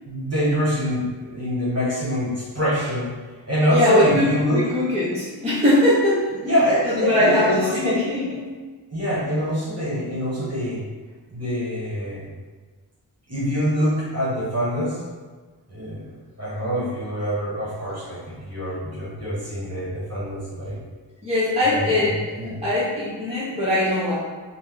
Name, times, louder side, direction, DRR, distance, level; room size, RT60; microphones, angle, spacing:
voice 1, 0.1-3.1 3.5-4.6 6.4-8.0 8.9-10.8 11.3-12.3 13.3-15.0 15.7-16.1 16.4-20.8 21.7-22.1 22.4-22.6, equal, 35° right, -7 dB, 1.5 m, -24 dB
voice 2, 3.7-6.5 6.8-8.5 21.2-22.3 22.6-24.1, left 1 dB, 15° right, -10 dB, 1.0 m, -21 dB
4.1 x 2.2 x 3.8 m, 1.4 s
wide cardioid pair, 65°, 43 cm